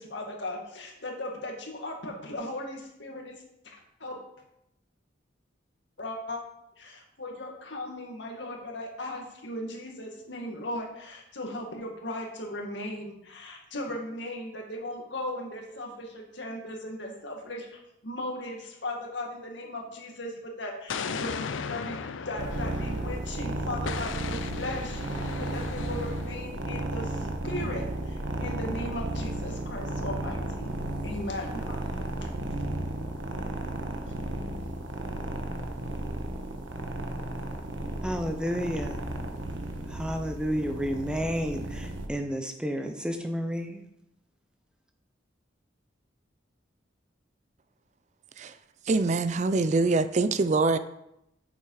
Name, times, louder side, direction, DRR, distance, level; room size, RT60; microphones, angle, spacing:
voice 1, 0.0-3.4 3.6-4.2 6.0-6.4 6.8-22.0 22.3-25.0 25.4-30.7 31.0-32.3 34.0-34.1, left 1 dB, 70° left, 1 dB, 2.1 m, -37 dB
Explosion, 20.9-23.3 23.9-26.4, left 5 dB, 90° left, 0.6 m, -36 dB
sound 1, 22.4-42.1, right 1 dB, 85° right, 1.2 m, -34 dB
voice 2, 38.0-39.0 39.9-43.8, equal, 5° right, 5 dB, 0.7 m, -31 dB
voice 3, 48.9-50.8, right 3 dB, 40° right, 13 dB, 0.4 m, -24 dB
8.3 x 7.3 x 4.9 m, 0.83 s
head